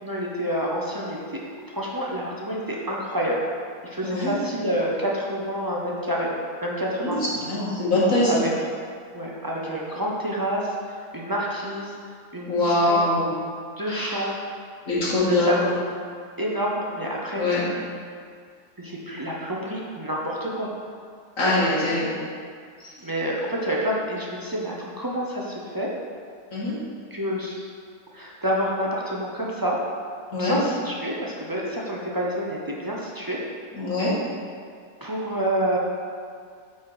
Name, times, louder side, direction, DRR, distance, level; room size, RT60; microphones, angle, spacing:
voice 1, 0.0-1.2 1.7-3.4 3.8-6.3 6.6-7.2 8.3-8.5 9.1-12.0 12.3-13.1 13.8-14.4 15.3-15.7 16.4-17.5 18.8-20.7 23.0-25.9 27.1-27.6 28.1-29.8 30.3-33.4 35.0-35.8, equal, 35° right, -4 dB, 0.3 m, -28 dB
voice 2, 4.0-4.4 7.0-8.5 12.5-13.3 13.9-14.2 14.9-15.7 17.3-17.7 21.4-22.1 22.8-22.9 26.5-26.8 30.3-30.6 33.7-34.1, left 1 dB, 50° left, -8 dB, 2.3 m, -23 dB
8.7 x 4.2 x 4.9 m, 2.1 s
omnidirectional pair, 1.8 m